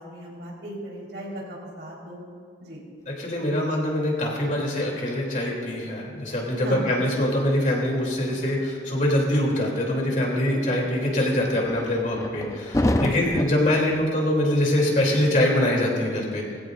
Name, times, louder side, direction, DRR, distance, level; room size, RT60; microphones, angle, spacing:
voice 1, 0.0-2.2 2.6-2.9 6.6-6.9 13.0-13.4, equal, 70° right, -3 dB, 4.1 m, -37 dB
voice 2, 3.1-16.4, left 1 dB, 45° left, -2 dB, 3.0 m, -24 dB
sound 1, 11.5-14.1, left 1 dB, 20° left, 0.5 m, -27 dB
20.5 x 16.0 x 2.6 m, 2.2 s
head